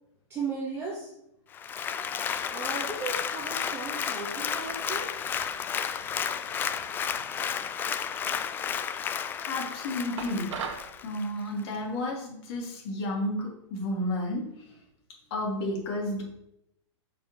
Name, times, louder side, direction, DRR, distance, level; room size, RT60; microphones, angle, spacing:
voice 1, 0.3-1.1 2.5-5.1 7.1-7.2, right 4 dB, 15° right, -5 dB, 1.8 m, -36 dB
Applause, 1.5-11.3 11.7-11.8, left 7 dB, 15° left, 0.3 m, -32 dB
voice 2, 9.4-10.5 11.0-14.4 15.3-16.2, left 1 dB, 50° left, -2 dB, 3.0 m, -31 dB
sound 1, 10.2-10.9, right 6 dB, 70° right, 1.5 m, -36 dB
6.6 x 4.6 x 6.3 m, 0.80 s
hypercardioid pair, 140°, 16 cm